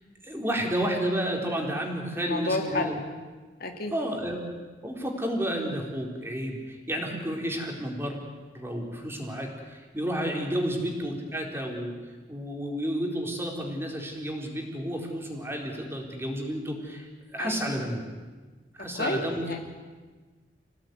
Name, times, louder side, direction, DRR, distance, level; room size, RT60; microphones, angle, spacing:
voice 1, 0.2-3.0 3.9-4.4 4.8-8.2 8.5-11.9 12.3-18.0 18.8-19.5, equal, 15° right, 0 dB, 4.2 m, -31 dB
voice 2, 2.1-2.9 3.6-3.9 17.4-17.6 18.9-19.2 19.4-19.6, left 2 dB, 60° left, 3 dB, 2.7 m, -30 dB
27.0 x 17.5 x 9.5 m, 1.4 s
head